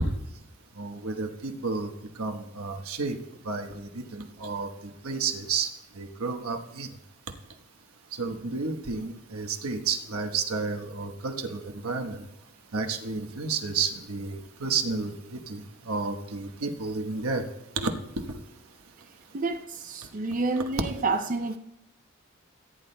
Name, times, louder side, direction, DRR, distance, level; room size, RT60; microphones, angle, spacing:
voice 1, 0.8-1.9 2.2-3.2 3.5-4.7 5.0-5.7 6.0-6.9 8.2-12.2 12.7-17.4 17.8-17.9, right 4 dB, 80° right, 5 dB, 1.2 m, -31 dB
voice 2, 19.3-21.6, right 3 dB, 35° right, 6 dB, 0.5 m, -29 dB
18.5 x 10.5 x 2.2 m, 0.88 s
head